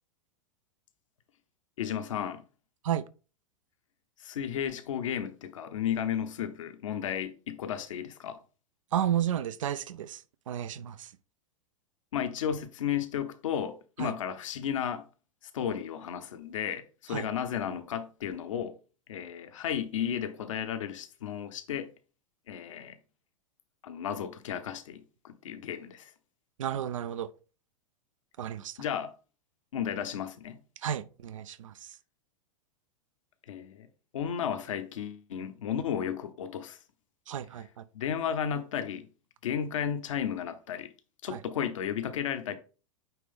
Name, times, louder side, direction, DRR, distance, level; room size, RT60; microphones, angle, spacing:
voice 1, 1.8-2.4 4.2-8.4 12.1-15.1 15.5-18.8 19.1-21.9 22.5-23.0 23.8-26.1 28.8-29.1 29.7-30.6 33.5-33.9 34.1-36.8 37.9-39.1 39.4-40.9 41.2-42.6, left 8 dB, 70° left, 1.0 m, -33 dB
voice 2, 8.9-11.1 14.0-14.1 17.1-17.3 26.6-27.3 28.4-28.8 30.8-32.0 37.3-37.8 41.3-41.4, right 10 dB, 70° right, 0.6 m, -32 dB
9.0 x 3.3 x 3.6 m
hypercardioid pair, 100°, 17 cm